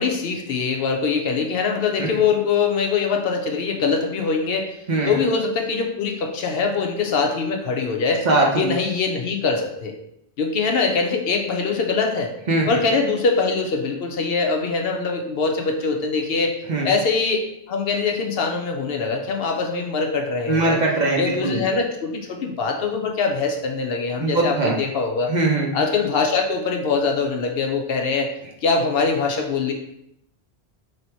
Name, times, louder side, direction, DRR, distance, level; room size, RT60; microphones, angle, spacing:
voice 1, 0.0-4.8 5.1-8.2 8.6-10.0 10.4-12.3 12.7-16.6 16.8-20.8 21.2-25.3 25.7-28.3 28.6-29.7, left 4 dB, 65° left, 2 dB, 0.8 m, -23 dB
voice 2, 8.3-8.7 12.5-12.7 16.7-16.9 20.5-21.6 24.2-24.7 25.3-25.7, right 2 dB, 50° right, -1 dB, 0.7 m, -20 dB
3.3 x 2.7 x 4.4 m, 0.77 s
omnidirectional pair, 1.1 m